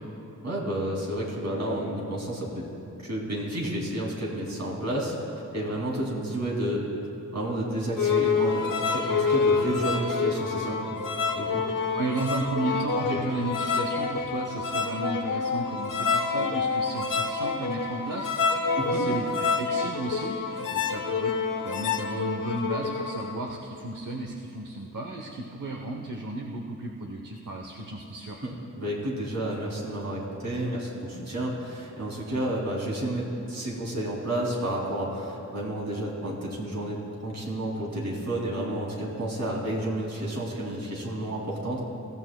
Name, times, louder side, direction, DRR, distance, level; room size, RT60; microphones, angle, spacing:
voice 1, 0.4-2.6 3.0-5.1 5.5-6.9 7.3-10.8 11.3-11.6 13.1-13.2 18.8-19.1 28.4-41.8, right 1 dB, 55° right, -3 dB, 2.6 m, -31 dB
sound 1, 8.0-23.3, left 5 dB, 85° left, 1.0 m, -27 dB
voice 2, 11.9-21.3 21.6-28.4, right 2 dB, 80° right, 1 dB, 0.9 m, -34 dB
21.0 x 15.5 x 2.2 m, 2.8 s
wide cardioid pair, 125°, 31 cm